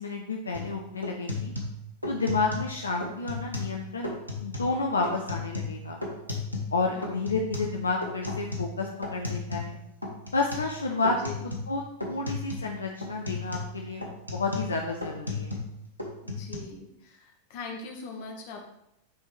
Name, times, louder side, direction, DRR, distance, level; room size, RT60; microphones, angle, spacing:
voice 1, 0.0-1.5 2.1-4.1 4.4-6.0 6.7-9.8 10.3-11.3 11.7-11.8 12.1-14.0 14.3-15.6, left 3 dB, 75° left, 1 dB, 0.7 m, -30 dB
sound 1, 0.5-0.7 1.0-2.7 3.0-3.8 4.0-4.7 5.0-6.8 7.0-9.8 10.0-10.7 11.0-11.8 12.0-12.7 13.0-15.7 16.0-16.6, left 3 dB, 90° right, 1.3 m, -34 dB
voice 2, 6.9-7.5 11.1-11.5 16.2-18.6, left 4 dB, 50° left, 2 dB, 1.4 m, -42 dB
9.3 x 4.4 x 3.3 m, 0.82 s
figure-of-eight pair, 90°, 0 cm